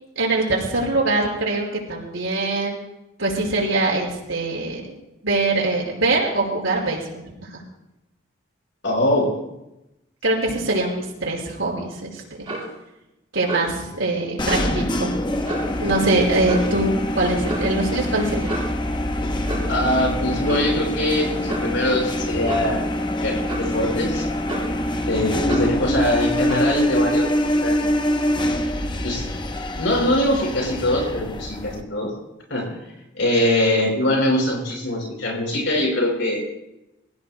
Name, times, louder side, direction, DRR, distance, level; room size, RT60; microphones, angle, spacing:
voice 1, 0.2-2.8 3.2-4.8 5.2-7.2 7.5-7.6 10.2-12.2 13.3-15.2 15.8-18.5, right 2 dB, 85° right, -2 dB, 5.2 m, -23 dB
voice 2, 8.8-9.3 19.7-22.9 23.2-24.3 25.1-27.8 29.0-29.3 29.7-32.1 32.5-32.8 33.1-36.4, left 1 dB, 65° left, 0 dB, 5.1 m, -22 dB
Clock, 12.4-12.7 13.5-13.8 14.4-14.7 15.4-15.8 16.4-16.8 17.4-17.7 18.4-18.8 19.4-19.8 20.4-20.8 21.5-21.7 22.4-22.7 23.5-23.7 24.5-24.8 25.5-25.7 26.5-26.7, right 1 dB, 25° right, 6.1 m, -31 dB
sound 1, 14.4-31.8, left 1 dB, 25° left, 0.8 m, -25 dB
26.5 x 15.5 x 2.2 m, 0.90 s
head